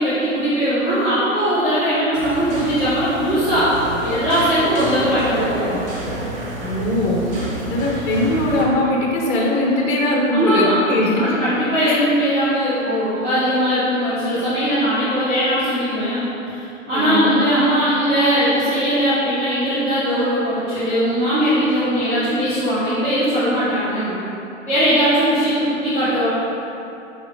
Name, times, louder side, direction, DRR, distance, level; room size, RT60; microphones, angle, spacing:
voice 1, 0.0-3.7 4.0-5.8 10.3-10.8 11.2-24.1 24.7-26.3, equal, 15° right, -14 dB, 1.4 m, -19 dB
sound 1, 2.1-8.6, right 1 dB, 45° right, 1.2 m, -28 dB
voice 2, 6.6-7.2 7.7-11.3 11.9-12.0 16.9-17.4, left 1 dB, 25° left, -2 dB, 1.0 m, -20 dB
6.3 x 4.8 x 3.5 m, 2.8 s
hypercardioid pair, 150°, 39 cm